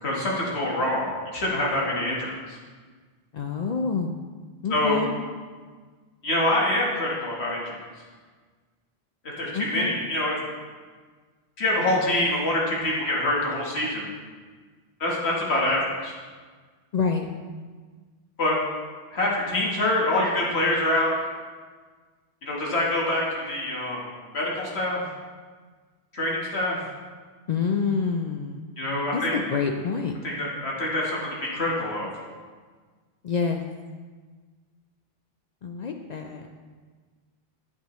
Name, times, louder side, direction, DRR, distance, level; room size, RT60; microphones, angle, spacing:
voice 1, 0.0-2.6 4.7-5.0 6.2-7.8 9.4-10.4 11.6-14.1 15.0-16.2 18.4-18.5 19.1-21.1 22.4-24.1 24.3-25.0 26.1-26.8 28.8-29.3 30.2-32.1, left 1 dB, 75° left, -4 dB, 1.6 m, -25 dB
voice 2, 3.3-4.2 4.6-5.1 9.5-10.0 16.9-17.3 27.5-28.7 29.1-30.1 33.2-33.6 35.6-36.5, left 5 dB, 55° left, 3 dB, 0.5 m, -27 dB
8.4 x 7.4 x 3.0 m, 1.5 s
omnidirectional pair, 1.1 m